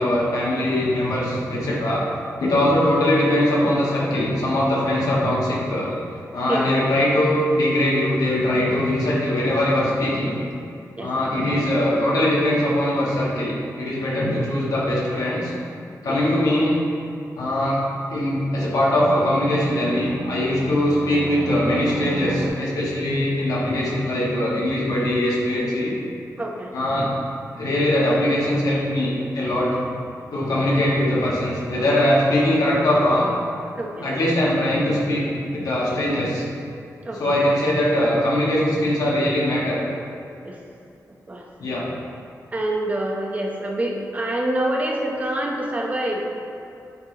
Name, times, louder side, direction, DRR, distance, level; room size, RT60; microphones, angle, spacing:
voice 1, 0.0-2.1 2.4-5.9 6.3-10.4 11.0-15.5 16.0-16.8 17.3-17.8 18.1-25.9 26.7-27.1 27.5-29.9 30.3-33.3 34.0-36.5 37.1-39.8 41.6-41.8, left 1 dB, 75° left, -5 dB, 1.6 m, -21 dB
voice 2, 11.0-11.4 16.1-16.2 26.4-26.7 30.6-30.7 33.8-34.1 37.0-37.3 40.4-40.6 41.3-41.4 42.5-46.3, right 1 dB, 25° right, -1 dB, 0.8 m, -26 dB
Fixed-wing aircraft airplane, 17.7-22.5, right 2 dB, 80° right, 1.0 m, -35 dB
8.8 x 5.4 x 2.9 m, 2.6 s
wide cardioid pair, 145°, 6 cm